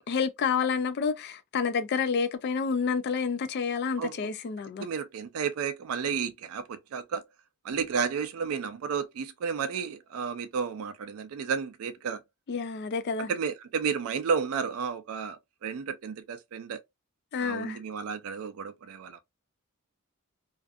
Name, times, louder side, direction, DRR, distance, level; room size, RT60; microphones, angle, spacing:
voice 1, 0.1-4.9 12.5-13.3 17.3-17.8, left 5 dB, 50° left, 0.3 m, -29 dB
voice 2, 4.8-7.2 7.6-12.2 13.3-16.8 17.4-19.2, right 6 dB, 70° right, 0.3 m, -32 dB
2.5 x 2.4 x 2.3 m
head